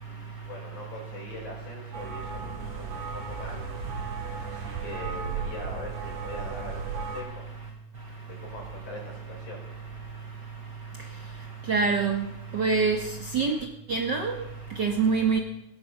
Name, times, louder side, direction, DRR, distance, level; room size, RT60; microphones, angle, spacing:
voice 1, 0.0-3.6 4.4-7.4 8.3-9.6, left 2 dB, 80° left, -2 dB, 6.8 m, -42 dB
sound 1, 1.9-7.2, right 5 dB, 80° right, 3.4 m, -35 dB
voice 2, 11.7-12.2 12.5-13.0 13.3-13.6 13.9-14.4 14.8-15.4, right 5 dB, 55° right, 3 dB, 1.3 m, -24 dB
17.5 x 12.0 x 5.9 m, 0.80 s
omnidirectional pair, 3.4 m